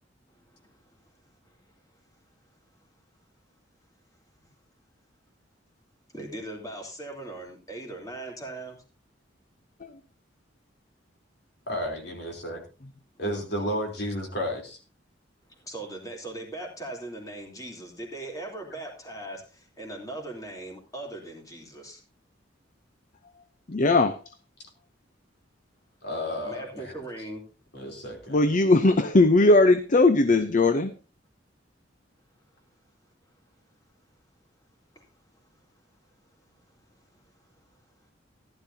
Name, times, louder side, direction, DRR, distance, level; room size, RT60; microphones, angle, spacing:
voice 1, 0.3-0.8 1.5-1.6 6.1-8.8 15.6-22.0 26.4-27.4 34.9-35.1 36.7-36.8 37.1-37.2 37.7-37.8, right 2 dB, 20° left, 3.3 m, -39 dB
voice 2, 11.7-12.6 13.2-14.8 26.0-26.9 27.7-28.4, equal, 60° left, 3.6 m, -32 dB
voice 3, 23.7-24.1 28.3-30.9, left 2 dB, 45° left, 0.7 m, -19 dB
15.0 x 12.0 x 2.8 m
head